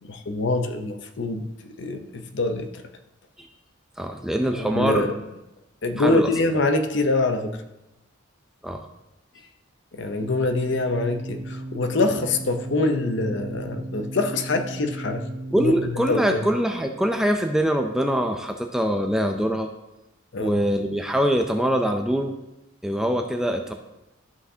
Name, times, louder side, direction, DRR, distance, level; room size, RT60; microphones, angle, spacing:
voice 1, 0.0-2.7 4.7-5.1 5.8-7.6 9.9-15.3 15.6-15.8 16.1-16.4 20.3-20.6, left 2 dB, 55° left, 7 dB, 0.7 m, -24 dB
voice 2, 4.0-5.1 6.0-6.3 8.6-8.9 15.5-19.7 20.4-22.4 22.8-23.7, equal, ahead, 4 dB, 0.4 m, -23 dB
sound 1, 10.2-15.7, right 2 dB, 30° right, 0.9 m, -35 dB
12.5 x 5.7 x 2.7 m, 0.95 s
head